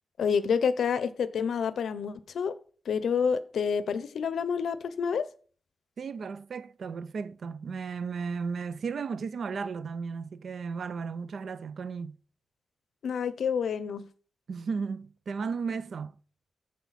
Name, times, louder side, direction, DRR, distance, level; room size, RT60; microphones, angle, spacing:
voice 1, 0.2-2.5 2.9-5.3 13.0-14.1, left 6 dB, 80° left, 0.6 m, -28 dB
voice 2, 6.0-12.2 14.5-16.1, right 5 dB, 60° right, 0.4 m, -35 dB
14.0 x 4.7 x 4.1 m
wide cardioid pair, 150°, 0 cm